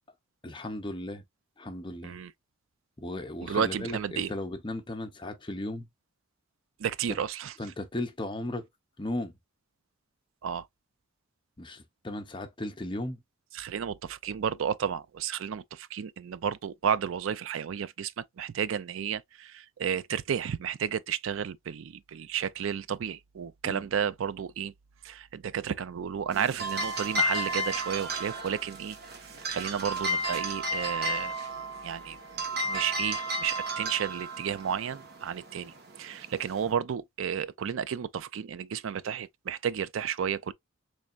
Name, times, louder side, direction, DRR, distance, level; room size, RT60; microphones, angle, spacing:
voice 1, 0.4-1.2 1.6-2.2 3.0-5.9 7.1-7.2 7.6-8.7 9.0-9.3 11.6-13.2 23.6-23.9, left 1 dB, 25° left, 0.7 m, -36 dB
voice 2, 3.4-4.3 6.8-7.5 10.4-10.7 13.5-24.7 25.0-29.0 29.2-31.3 31.8-40.5, right 8 dB, 70° right, 0.4 m, -32 dB
sound 1, 26.3-36.7, equal, 50° right, 1.1 m, -33 dB
4.0 x 3.3 x 2.3 m
head